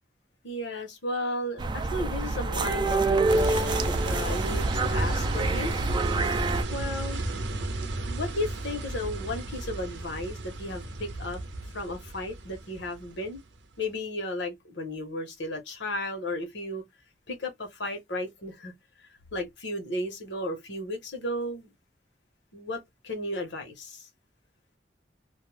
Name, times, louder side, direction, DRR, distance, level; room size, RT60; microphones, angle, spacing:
voice 1, 0.4-5.7 6.7-7.2 8.0-11.4 11.7-13.4 13.8-16.8 17.3-18.7 19.3-21.7 22.5-24.1, left 1 dB, 85° left, 1.1 m, -34 dB
sound 1, 1.6-6.6, right 3 dB, 25° right, 0.3 m, -27 dB
sound 2, 3.3-13.4, right 2 dB, 80° right, 0.6 m, -33 dB
2.5 x 2.1 x 3.2 m
head